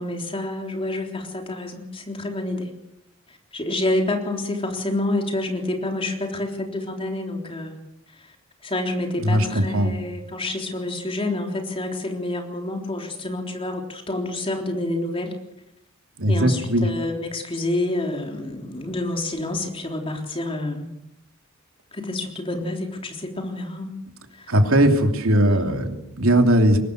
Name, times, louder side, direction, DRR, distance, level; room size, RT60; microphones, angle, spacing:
voice 1, 0.0-2.7 3.3-7.8 8.2-8.3 8.6-15.4 16.3-20.9 21.9-24.0 24.3-24.5 25.3-25.8, left 2 dB, 25° left, 2 dB, 3.6 m, -28 dB
voice 2, 9.2-10.0 16.2-16.9 24.5-26.8, right 1 dB, 85° right, 4 dB, 2.9 m, -19 dB
22.5 x 19.5 x 6.5 m, 0.84 s
head